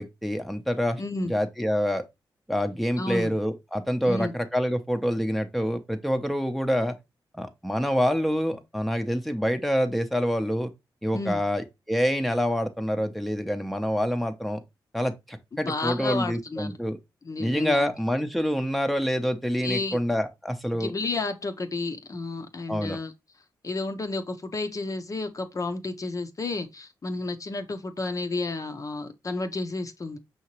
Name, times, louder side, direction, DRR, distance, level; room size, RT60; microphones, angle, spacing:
voice 1, 0.0-2.0 2.5-7.0 7.3-10.7 11.0-14.6 14.9-17.0 17.4-20.9 22.7-23.0, equal, ahead, 0.6 m, -26 dB
voice 2, 1.0-1.3 3.0-3.3 4.0-4.3 11.1-11.4 15.5-16.7 17.2-17.9 19.6-20.0 20.7-23.1 23.6-30.2, left 3 dB, 40° left, 0.6 m, -31 dB
5.6 x 2.8 x 2.9 m
cardioid pair, 60°, 8 cm